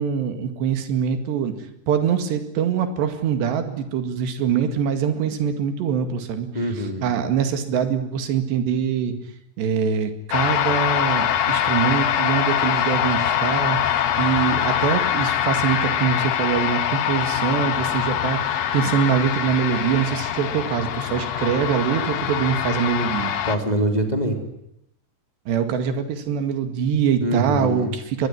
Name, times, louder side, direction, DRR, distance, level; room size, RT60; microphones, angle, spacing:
voice 1, 0.0-1.5 1.9-6.5 7.0-9.2 9.6-23.3 25.5-28.3, right 7 dB, 90° right, 8 dB, 4.3 m, -23 dB
voice 2, 6.5-7.0 23.4-24.4 27.2-27.9, equal, 10° left, 3 dB, 3.1 m, -24 dB
sound 1, 10.3-23.6, left 10 dB, 75° left, 1.5 m, -23 dB
23.5 x 20.5 x 9.9 m, 0.79 s
omnidirectional pair, 4.8 m